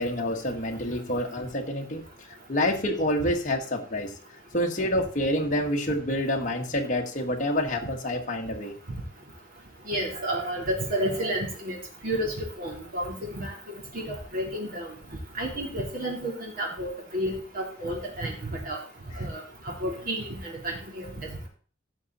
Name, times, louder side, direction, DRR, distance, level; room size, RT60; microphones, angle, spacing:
voice 1, 0.0-2.0 2.5-4.2 4.5-8.8, left 1 dB, 40° left, 1 dB, 1.6 m, -27 dB
voice 2, 9.9-11.8 12.0-12.3 12.6-13.5 13.9-14.9 15.4-18.3 18.7-18.8 19.2-19.4 19.8-21.1, right 1 dB, 45° right, -1 dB, 3.6 m, -31 dB
16.0 x 6.0 x 4.2 m, 0.42 s
head